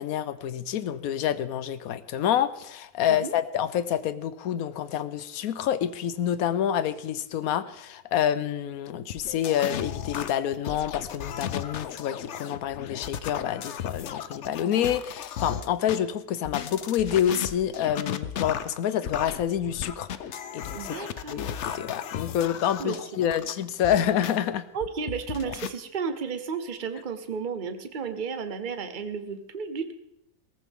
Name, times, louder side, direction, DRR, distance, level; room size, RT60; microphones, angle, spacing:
voice 1, 0.0-20.3 20.5-24.7, left 10 dB, 80° left, 14 dB, 1.2 m, -28 dB
sound 1, 9.1-16.0 16.4-24.4 24.8-25.7, left 9 dB, 60° left, 0.9 m, -35 dB
voice 2, 20.7-21.4 22.8-23.0 23.3-23.4 24.7-29.9, right 5 dB, 40° right, 9 dB, 1.0 m, -33 dB
17.5 x 14.5 x 3.7 m, 0.80 s
omnidirectional pair, 1.5 m